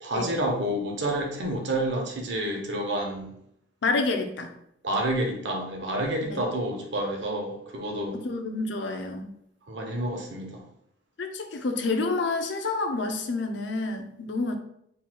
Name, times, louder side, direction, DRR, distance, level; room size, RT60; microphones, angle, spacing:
voice 1, 0.0-3.3 4.8-8.2 9.7-10.6, right 1 dB, 65° right, 2 dB, 0.8 m, -29 dB
voice 2, 3.8-4.5 6.2-6.4 8.1-9.3 11.2-14.5, left 3 dB, 65° left, 5 dB, 0.6 m, -28 dB
3.9 x 2.2 x 4.2 m, 0.74 s
head